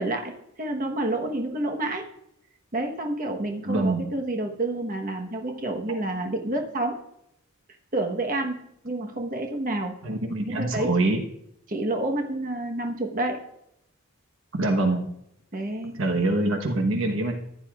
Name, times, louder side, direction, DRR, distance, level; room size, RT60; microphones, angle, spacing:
voice 1, 0.0-2.1 2.7-7.0 7.9-9.9 10.5-11.0 11.7-13.4 15.5-15.9, right 2 dB, 40° right, 2 dB, 1.2 m, -29 dB
voice 2, 3.6-4.0 5.9-6.0 10.0-11.2 14.5-15.1 15.9-17.3, right 2 dB, 60° right, 4 dB, 1.1 m, -24 dB
15.0 x 10.0 x 2.4 m, 0.76 s
head